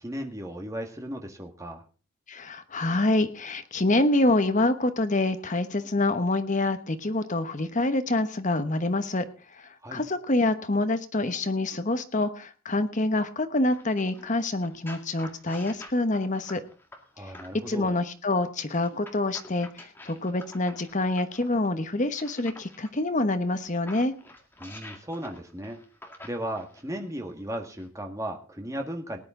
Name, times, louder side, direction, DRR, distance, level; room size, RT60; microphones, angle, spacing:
voice 1, 0.0-1.8 9.8-10.0 17.2-17.9 24.6-25.8 26.2-29.2, equal, 15° right, 3 dB, 1.7 m, -36 dB
voice 2, 2.3-9.2 9.6-16.6 17.7-24.1, left 2 dB, 35° left, 10 dB, 1.1 m, -26 dB
sound 1, 13.7-17.8 18.7-22.9 23.5-26.9 27.7-27.8, left 1 dB, 10° left, 2.0 m, -48 dB
19.0 x 10.5 x 3.8 m, 0.37 s
head